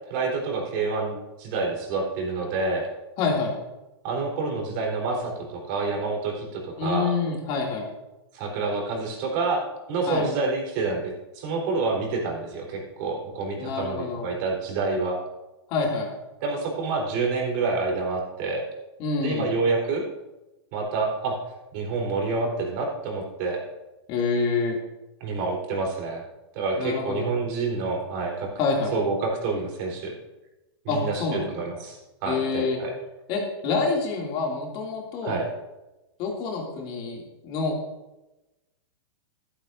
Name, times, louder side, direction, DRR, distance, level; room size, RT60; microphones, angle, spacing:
voice 1, 0.1-2.9 4.0-7.1 8.3-9.6 9.9-15.2 16.4-18.6 19.2-20.0 20.7-21.4 21.7-23.6 25.2-26.2 26.5-28.5 28.9-30.1 30.8-32.9 35.2-35.5, right 3 dB, 45° right, 0 dB, 3.9 m, -28 dB
voice 2, 3.2-3.5 6.8-7.9 10.1-10.3 13.6-14.3 15.7-16.1 19.0-19.5 24.1-24.8 26.8-27.3 28.6-29.0 30.9-31.4 32.3-32.8 33.3-35.4 36.2-37.7, left 4 dB, 40° left, 0 dB, 2.6 m, -27 dB
13.0 x 12.5 x 2.6 m, 1.0 s
hypercardioid pair, 135°, 14 cm